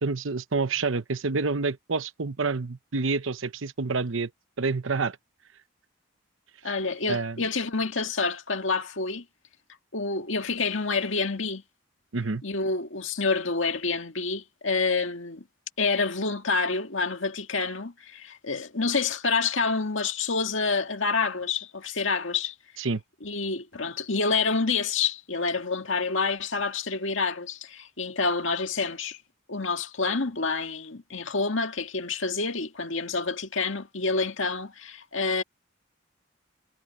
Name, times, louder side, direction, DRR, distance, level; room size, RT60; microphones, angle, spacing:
voice 1, 0.0-4.3 4.6-5.2 7.1-7.4 12.1-12.4 22.8-23.0, right 4 dB, 70° right, 0.9 m, -28 dB
voice 2, 6.6-9.2 9.9-11.6 12.4-15.4 15.8-22.5 23.2-29.2 29.5-35.4, left 4 dB, 70° left, 2.1 m, -28 dB
head